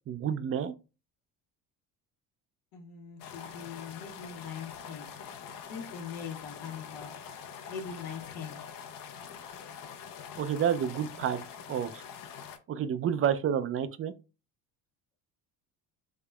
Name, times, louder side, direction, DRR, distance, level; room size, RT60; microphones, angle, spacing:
voice 1, 0.1-0.7 10.4-11.4 11.7-12.0 12.7-14.1, right 8 dB, 35° right, 0.4 m, -29 dB
voice 2, 2.7-5.1 5.7-7.2 7.7-8.6, left 7 dB, 85° left, 1.3 m, -41 dB
sound 1, 3.2-12.6, left 7 dB, 55° left, 0.7 m, -45 dB
3.5 x 3.5 x 2.2 m
supercardioid pair, 90°, 41 cm